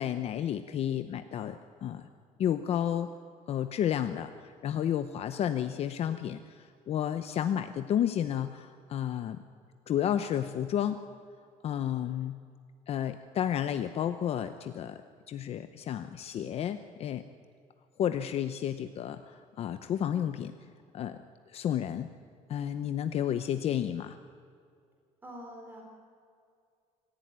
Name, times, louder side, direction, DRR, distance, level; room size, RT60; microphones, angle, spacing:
voice 1, 0.0-2.0 2.4-3.1 3.5-9.4 9.9-11.0 11.6-12.4 12.9-15.0 15.3-17.2 18.0-20.5 20.9-21.2 21.5-22.1 22.5-24.2, left 10 dB, 45° left, 10 dB, 0.8 m, -31 dB
voice 2, 25.2-25.8, equal, 15° right, 0 dB, 3.9 m, -45 dB
25.5 x 15.5 x 9.5 m, 2.3 s
cardioid pair, 175°, 14 cm